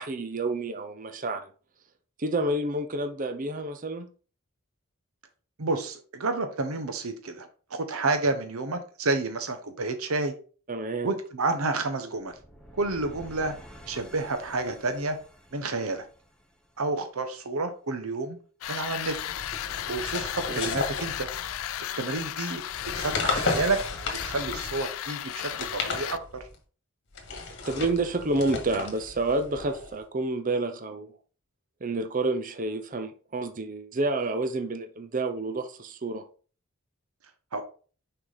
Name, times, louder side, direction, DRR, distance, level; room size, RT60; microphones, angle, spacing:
voice 1, 0.0-1.5 2.2-4.1 10.7-11.1 20.5-20.7 27.6-31.1 31.8-36.2, right 2 dB, 40° right, 0.7 m, -29 dB
voice 2, 5.6-10.3 11.0-12.3 12.8-13.5 13.9-15.2 15.5-16.0 16.8-18.4 18.7-19.2 19.9-21.3 22.0-22.6 22.9-26.2 37.5-37.6, right 3 dB, 90° right, 0.9 m, -30 dB
sound 1, 12.2-17.2, equal, 5° left, 0.9 m, -50 dB
sound 2, 18.6-26.2, left 11 dB, 70° left, 0.3 m, -35 dB
sound 3, 19.1-21.8 22.7-24.9 25.4-26.6 27.1-30.0, left 3 dB, 55° left, 1.6 m, -34 dB
6.2 x 4.7 x 4.0 m
head